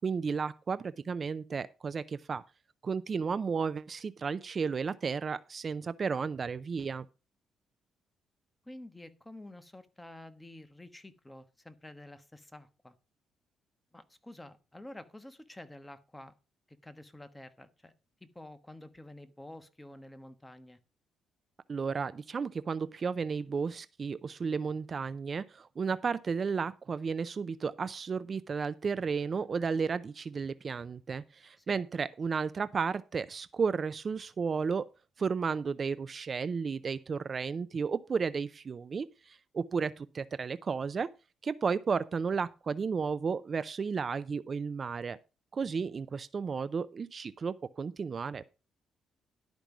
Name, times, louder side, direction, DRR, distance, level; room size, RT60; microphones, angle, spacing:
voice 1, 0.0-2.4 2.8-7.0 21.7-34.9 35.2-41.1 41.4-45.2 45.5-48.4, right 5 dB, 40° right, 0.5 m, -33 dB
voice 2, 8.6-12.9 13.9-16.3 16.7-17.9 18.2-20.8 31.6-31.8, left 1 dB, 10° left, 1.2 m, -49 dB
11.5 x 5.2 x 6.0 m
cardioid pair, 90°, 0 cm